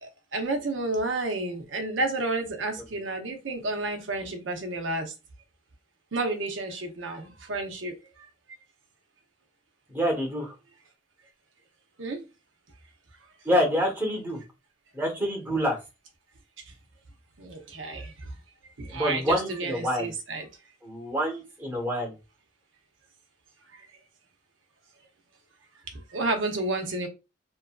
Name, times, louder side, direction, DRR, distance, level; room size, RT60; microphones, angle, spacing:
voice 1, 0.0-5.1 6.1-8.3 12.0-12.2 17.4-18.3 18.8-20.5 23.7-23.8 25.9-27.1, right 2 dB, 75° right, 0.7 m, -31 dB
voice 2, 9.9-10.5 13.4-14.4 14.9-15.8 18.9-20.1 20.8-22.1, equal, 10° right, 1.0 m, -27 dB
3.0 x 2.5 x 2.3 m
head